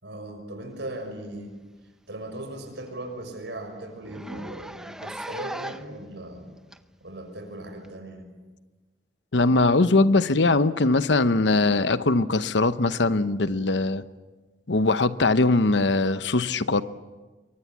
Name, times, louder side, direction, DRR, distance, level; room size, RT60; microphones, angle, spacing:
voice 1, 0.0-1.6 2.1-6.5 7.0-8.3, right 1 dB, 65° right, 6.1 m, -38 dB
Zipper (clothing), 1.4-1.6 1.9-2.0 2.4-2.5 2.9-3.0 3.2-3.4 4.0-6.0 6.7-6.8 7.8-7.9, right 1 dB, 5° right, 0.7 m, -38 dB
voice 2, 9.3-14.0 14.7-16.8, left 3 dB, 70° left, 0.9 m, -21 dB
27.0 x 23.5 x 7.3 m
head